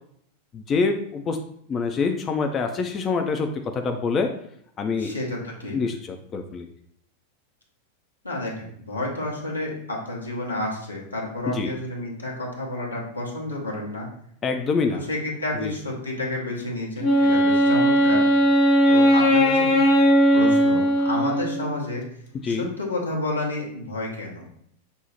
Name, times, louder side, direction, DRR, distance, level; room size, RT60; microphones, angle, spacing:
voice 1, 0.5-1.4 1.7-4.3 4.8-5.1 5.7-6.7 11.5-11.7 14.4-15.0 15.6-15.7 22.4-22.7, left 4 dB, 25° left, 5 dB, 0.3 m, -25 dB
voice 2, 5.0-5.8 8.2-14.1 14.9-18.2 18.9-19.8 20.3-22.0 22.4-24.4, left 1 dB, 85° left, -3 dB, 0.9 m, -30 dB
Wind instrument woodwind instrument, 17.0-21.8, equal, 45° left, 0.7 m, -18 dB
5.4 x 2.0 x 2.9 m, 0.68 s
figure-of-eight pair, 90°, 0 cm